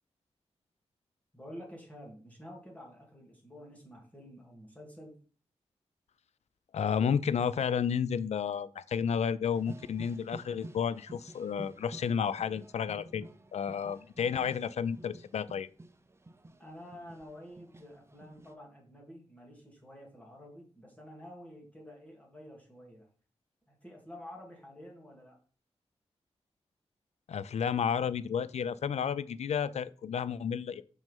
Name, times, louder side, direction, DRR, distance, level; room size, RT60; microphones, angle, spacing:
voice 1, 1.3-5.1 16.6-23.1 23.7-25.4, equal, 10° left, -1 dB, 2.7 m, -49 dB
voice 2, 6.7-15.7 27.3-30.8, left 7 dB, 85° left, 17 dB, 0.5 m, -31 dB
sound 1, 9.5-18.5, right 2 dB, 25° right, 0.8 m, -51 dB
6.1 x 5.4 x 5.4 m, 0.41 s
wide cardioid pair, 80°, 11 cm